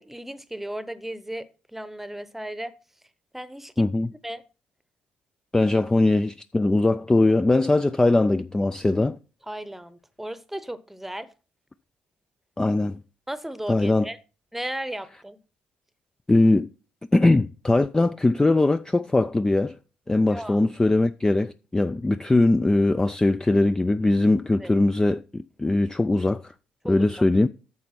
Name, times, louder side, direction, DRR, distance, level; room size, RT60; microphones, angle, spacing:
voice 1, 0.0-2.7 3.3-3.9 4.2-4.4 9.5-11.3 13.3-14.2 14.5-15.4 20.2-20.6 24.6-24.7 26.8-27.1, right 1 dB, 5° right, 0.9 m, -35 dB
voice 2, 3.8-4.1 5.5-9.2 12.6-13.0 13.7-14.1 16.3-16.7 17.1-19.8 20.1-26.5 26.9-27.5, left 2 dB, 15° left, 0.4 m, -21 dB
9.4 x 6.6 x 4.4 m
hypercardioid pair, 45°, 4 cm